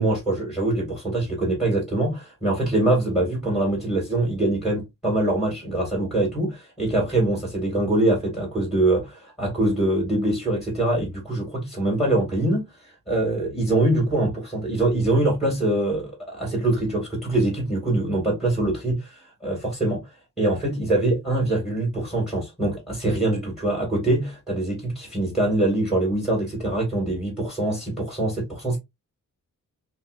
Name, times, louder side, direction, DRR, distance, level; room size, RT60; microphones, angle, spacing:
voice 1, 0.0-12.7 13.1-20.1 20.4-28.8, right 2 dB, ahead, 2.3 m, -24 dB
5.5 x 2.2 x 2.6 m
cardioid pair, 95°, 33 cm